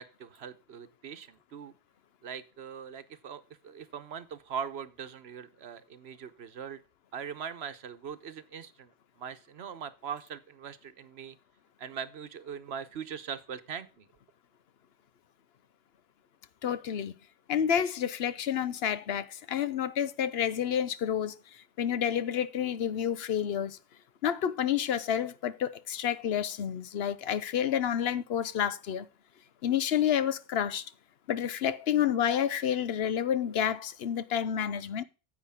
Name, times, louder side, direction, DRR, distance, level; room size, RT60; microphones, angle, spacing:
voice 1, 0.0-1.7 2.2-6.8 7.1-8.9 9.2-11.4 11.8-14.1, right 7 dB, 80° right, 1.2 m, -41 dB
voice 2, 16.6-17.1 17.5-23.8 24.2-29.1 29.6-30.9 31.3-35.0, left 9 dB, 75° left, 0.9 m, -29 dB
9.8 x 8.2 x 3.6 m
omnidirectional pair, 1.1 m